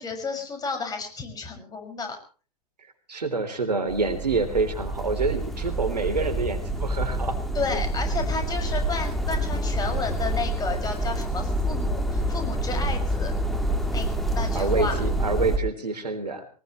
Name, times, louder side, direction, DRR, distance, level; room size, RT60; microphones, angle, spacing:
voice 1, 0.0-2.2 7.5-13.3 13.8-15.0, left 4 dB, 20° left, 4 dB, 6.2 m, -32 dB
voice 2, 3.1-7.4 7.7-7.8 14.5-16.4, right 4 dB, 80° right, 9 dB, 3.6 m, -27 dB
sound 1, 3.9-15.6, right 1 dB, ahead, 3.2 m, -27 dB
23.0 x 20.0 x 3.2 m, 0.38 s
figure-of-eight pair, 100°, 21 cm